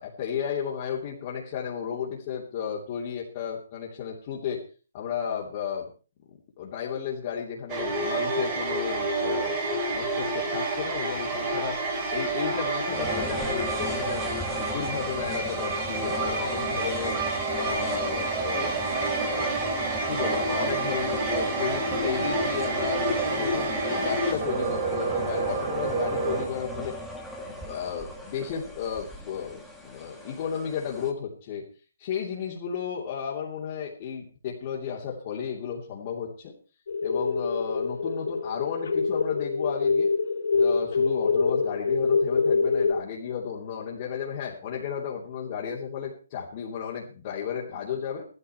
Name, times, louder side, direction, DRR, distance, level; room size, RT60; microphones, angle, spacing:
voice 1, 0.0-4.6 4.9-5.9 6.6-11.8 12.1-17.2 17.5-19.5 20.1-26.9 27.4-31.7 32.0-36.5 37.0-40.1 40.5-48.3, left 7 dB, 30° left, -5 dB, 2.9 m, -33 dB
sound 1, 7.7-26.4, right 3 dB, 20° right, 3.1 m, -28 dB
sound 2, 12.9-31.1, equal, ahead, 1.7 m, -37 dB
sound 3, 36.9-42.9, left 4 dB, 60° left, 4.4 m, -25 dB
15.0 x 13.0 x 4.5 m, 0.37 s
hypercardioid pair, 165°, 0 cm